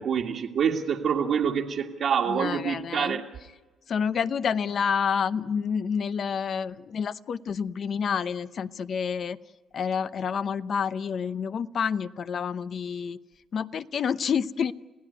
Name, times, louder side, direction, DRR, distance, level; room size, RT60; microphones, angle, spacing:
voice 1, 0.0-3.2, right 7 dB, 65° right, -2 dB, 1.8 m, -26 dB
voice 2, 2.3-3.2 3.9-9.4 9.7-13.2 13.5-14.7, left 6 dB, 55° left, 13 dB, 0.8 m, -28 dB
28.5 x 16.5 x 9.9 m, 1.3 s
cardioid pair, 90°, 0 cm